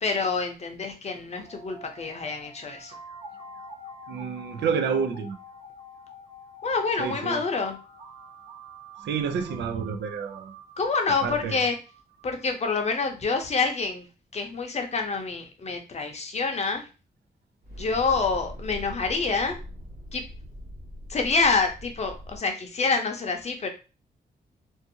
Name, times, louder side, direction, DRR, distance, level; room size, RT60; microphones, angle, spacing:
voice 1, 0.0-2.9 6.6-7.8 10.8-11.8 12.2-14.1 14.3-16.8 17.8-19.6 20.1-20.2 21.1-23.7, left 4 dB, 40° left, 0.6 m, -27 dB
sound 1, 1.3-12.3, right 1 dB, 45° right, 1.0 m, -46 dB
voice 2, 4.1-5.4 7.0-7.4 9.0-10.5 11.2-11.6, right 6 dB, 90° right, 0.4 m, -29 dB
sound 2, 17.6-22.4, equal, 65° right, 1.3 m, -41 dB
2.6 x 2.4 x 2.7 m
wide cardioid pair, 115°, 17 cm